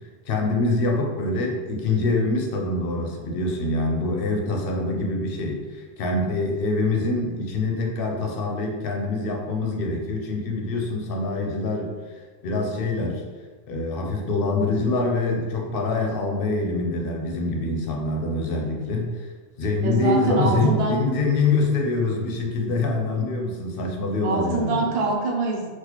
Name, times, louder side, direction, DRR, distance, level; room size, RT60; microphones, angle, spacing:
voice 1, 0.3-13.2 13.7-19.3 19.6-24.9, left 3 dB, 65° left, 0 dB, 0.8 m, -25 dB
voice 2, 19.8-21.0 24.2-25.7, right 3 dB, 75° right, -1 dB, 0.9 m, -24 dB
3.9 x 2.4 x 2.9 m, 1.4 s
omnidirectional pair, 1.1 m